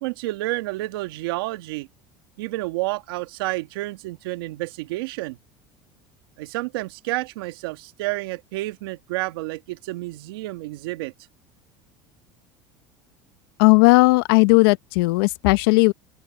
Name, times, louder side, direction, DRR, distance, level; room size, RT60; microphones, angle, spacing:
voice 1, 0.0-1.9 2.4-5.4 6.4-11.1, right 19 dB, 80° right, 1.9 m, -30 dB
voice 2, 13.6-15.9, left 27 dB, 80° left, 0.9 m, -16 dB
open air
supercardioid pair, 90°, 12 cm